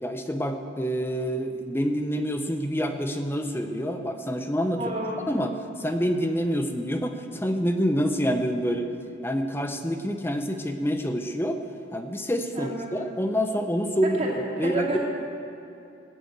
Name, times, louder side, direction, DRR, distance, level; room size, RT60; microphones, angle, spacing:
voice 1, 0.0-4.8 5.3-5.5 5.8-8.8 9.2-11.6 11.9-15.0, equal, 10° left, 6 dB, 0.7 m, -27 dB
voice 2, 4.8-5.3 12.5-12.9 14.0-15.0, right 1 dB, 35° right, -3 dB, 2.6 m, -30 dB
15.5 x 9.4 x 8.1 m, 2.7 s
head